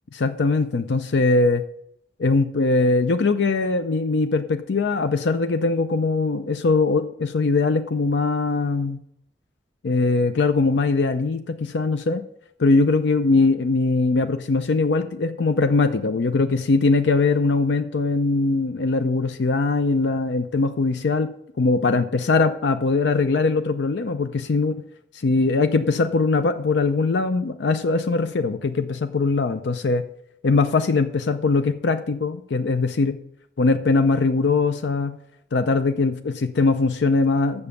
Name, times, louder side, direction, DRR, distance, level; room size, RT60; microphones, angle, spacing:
voice 1, 0.1-1.6 2.2-9.0 9.8-12.2 12.6-24.8 25.1-30.0 30.4-33.2 33.6-35.2 35.5-37.7, left 3 dB, 85° left, 9 dB, 0.5 m, -21 dB
7.0 x 6.7 x 6.9 m, 0.73 s
head